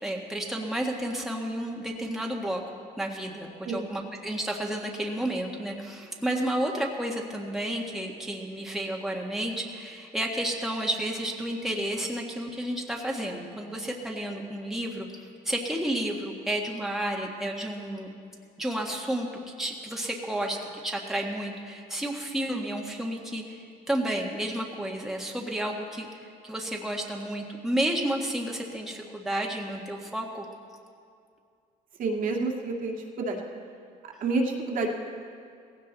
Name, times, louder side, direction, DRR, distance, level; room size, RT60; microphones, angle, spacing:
voice 1, 0.0-15.1 15.4-18.1 18.6-19.3 19.6-20.6 20.8-26.1 26.4-30.5, right 1 dB, ahead, -1 dB, 1.6 m, -31 dB
voice 2, 32.0-33.4 34.2-34.9, right 3 dB, 55° right, 0 dB, 2.1 m, -29 dB
17.5 x 16.0 x 4.1 m, 2.3 s
cardioid pair, 110°, 17 cm